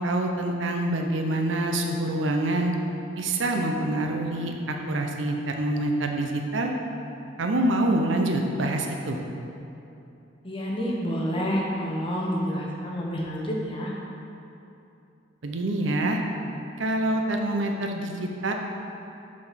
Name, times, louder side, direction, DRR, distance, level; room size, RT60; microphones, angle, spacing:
voice 1, 0.0-2.7 3.2-6.7 7.4-9.2 15.4-16.2 16.8-18.5, right 1 dB, 75° right, 3 dB, 0.7 m, -26 dB
voice 2, 10.4-13.9, equal, 25° left, -3 dB, 1.0 m, -28 dB
5.9 x 5.0 x 5.7 m, 2.8 s
head